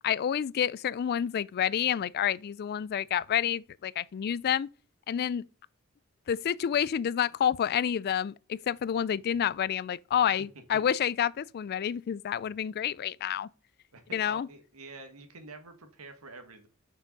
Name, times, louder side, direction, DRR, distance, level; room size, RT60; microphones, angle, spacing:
voice 1, 0.0-4.7 5.1-5.5 6.3-13.5 14.1-14.5, left 9 dB, 45° left, 0.3 m, -29 dB
voice 2, 13.9-16.7, right 3 dB, 90° right, 1.4 m, -47 dB
6.3 x 5.7 x 5.2 m
head